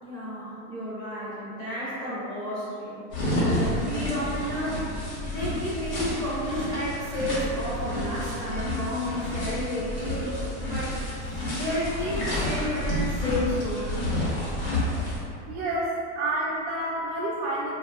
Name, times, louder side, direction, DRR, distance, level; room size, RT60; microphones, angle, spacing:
voice 1, 0.0-4.9 5.3-10.4 10.7-14.1, left 1 dB, 10° left, -13 dB, 0.4 m, -32 dB
sound 1, 3.1-15.2, left 1 dB, 85° left, 1.1 m, -30 dB
voice 2, 15.5-17.7, right 1 dB, 60° right, -7 dB, 0.5 m, -29 dB
2.7 x 2.3 x 2.3 m, 2.6 s
cardioid pair, 160°, 36 cm